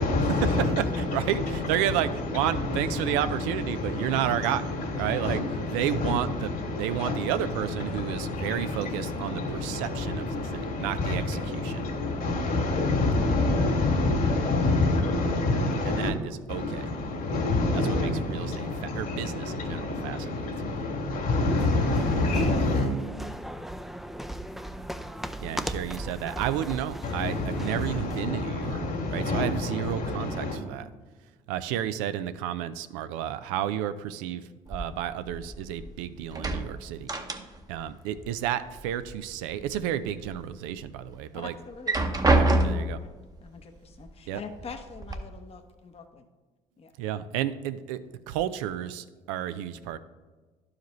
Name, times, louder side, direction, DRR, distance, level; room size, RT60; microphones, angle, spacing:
voice 1, 0.0-16.1 16.5-22.9 27.0-30.6, left 2 dB, 60° left, 1 dB, 1.9 m, -28 dB
voice 2, 1.1-4.6 5.0-5.4 5.7-6.5 6.8-10.2 10.5-11.8 15.9-16.1 16.5-16.9 17.9-18.7 19.0-20.7 25.4-28.8 29.1-30.9 31.5-37.1 37.7-41.5 42.3-43.0 44.3-44.4 47.0-48.0 48.3-50.0, right 11 dB, 90° right, 12 dB, 0.4 m, -31 dB
sound 1, 21.1-28.3, right 1 dB, ahead, 0.4 m, -37 dB
sound 2, 34.7-35.9 36.2-37.8 38.1-39.1 39.5-40.3 40.8-40.9 41.7-43.1 44.0-44.1 44.5-45.1, right 2 dB, 20° right, 0.8 m, -27 dB
voice 3, 41.3-42.5 43.0-46.3 46.8-46.9, left 5 dB, 40° left, 5 dB, 0.8 m, -44 dB
11.0 x 4.9 x 3.1 m, 1.3 s
supercardioid pair, 65°, 16 cm